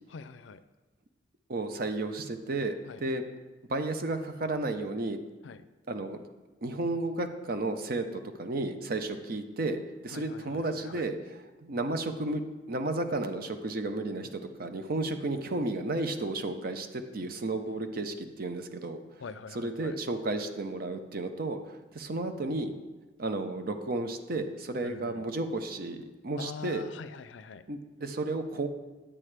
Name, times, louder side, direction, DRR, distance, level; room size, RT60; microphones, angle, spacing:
voice 1, 0.1-0.6 2.9-3.0 5.4-5.6 10.1-11.1 19.2-20.0 24.8-25.3 26.4-27.6, left 5 dB, 80° left, 12 dB, 0.4 m, -44 dB
voice 2, 1.5-3.2 3.7-5.2 5.9-6.2 6.6-12.4 12.7-19.0 19.5-22.7 23.2-26.8 27.7-28.7, right 2 dB, 55° right, 7 dB, 0.7 m, -33 dB
9.0 x 8.6 x 3.3 m, 1.2 s
head